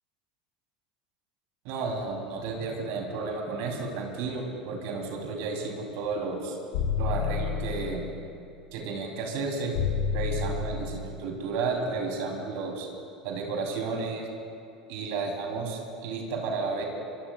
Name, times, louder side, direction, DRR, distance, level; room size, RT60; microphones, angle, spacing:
voice 1, 1.6-6.6 7.0-8.1 8.7-9.7 10.1-12.9 13.2-14.3 14.9-16.8, right 4 dB, 55° right, 1 dB, 3.2 m, -32 dB
sound 1, 6.7-8.2 9.7-11.2, left 6 dB, 55° left, 1.3 m, -29 dB
24.0 x 23.5 x 2.4 m, 2.5 s
figure-of-eight pair, 75°, 4 cm